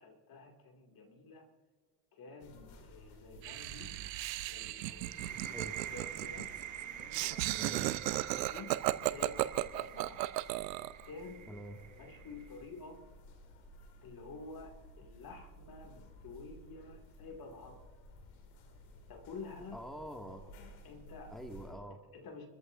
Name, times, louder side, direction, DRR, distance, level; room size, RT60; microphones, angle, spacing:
voice 1, 0.0-1.5 2.1-4.0 4.5-6.5 6.8-10.2 11.0-11.5 12.0-13.1 14.0-17.8 19.1-19.8 20.8-21.3 22.1-22.5, left 4 dB, 45° left, 4 dB, 2.5 m, -50 dB
sound 1, 2.4-21.8, equal, 70° left, 2.6 m, -56 dB
Laughter, 3.4-11.0, right 16 dB, 80° right, 0.7 m, -35 dB
sound 2, 5.0-12.6, right 10 dB, 40° right, 1.2 m, -47 dB
voice 2, 7.6-7.9 11.5-11.8 19.7-20.4 21.3-22.0, equal, ahead, 4 dB, 2.1 m, -45 dB
28.0 x 14.0 x 2.6 m, 1.4 s
hypercardioid pair, 60°, 48 cm